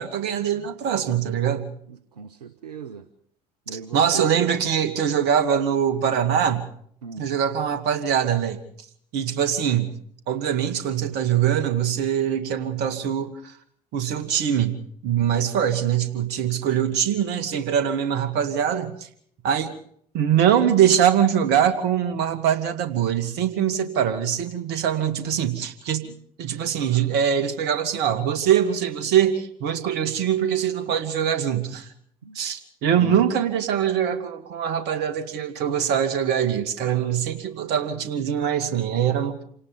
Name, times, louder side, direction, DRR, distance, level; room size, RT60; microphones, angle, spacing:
voice 1, 0.0-1.7 3.7-6.6 7.2-8.6 9.1-9.9 10.3-13.5 13.9-14.7 15.0-19.1 19.4-19.7 20.1-31.9 32.3-39.4, right 9 dB, 60° right, 10 dB, 2.5 m, -23 dB
voice 2, 1.9-3.1 3.7-4.3 7.0-7.3 32.2-32.4 32.9-33.3, right 5 dB, 85° right, 12 dB, 1.0 m, -36 dB
28.0 x 18.0 x 5.4 m, 0.64 s
figure-of-eight pair, 60°, 20 cm